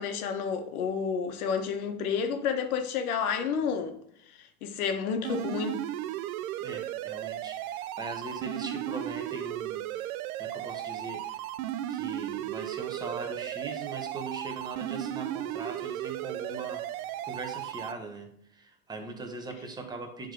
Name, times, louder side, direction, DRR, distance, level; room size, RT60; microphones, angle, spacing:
voice 1, 0.0-4.0 4.4-5.8, left 6 dB, 80° left, 1.4 m, -30 dB
sound 1, 5.2-17.9, right 12 dB, 75° right, 0.6 m, -35 dB
voice 2, 6.6-11.5 11.9-16.9 17.2-20.3, right 3 dB, 10° right, 0.9 m, -40 dB
10.5 x 3.7 x 3.8 m
supercardioid pair, 140°, 43 cm